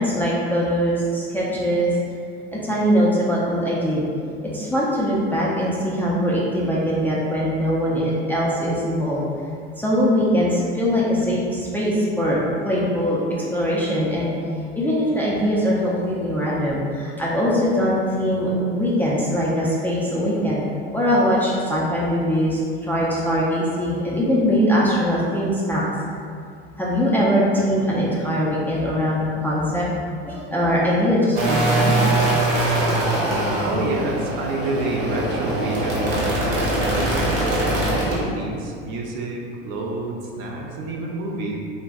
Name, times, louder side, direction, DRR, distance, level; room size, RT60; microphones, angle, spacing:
voice 1, 0.0-1.9 2.5-4.0 4.4-9.2 9.8-14.3 14.8-25.8 26.8-29.8 30.3-32.2, equal, 5° left, -7 dB, 0.3 m, -21 dB
sound 1, 31.4-38.2, right 1 dB, 80° right, 1.0 m, -22 dB
voice 2, 33.6-41.6, right 2 dB, 65° right, 0 dB, 0.5 m, -28 dB
2.4 x 2.1 x 3.5 m, 2.3 s
supercardioid pair, 110°, 30 cm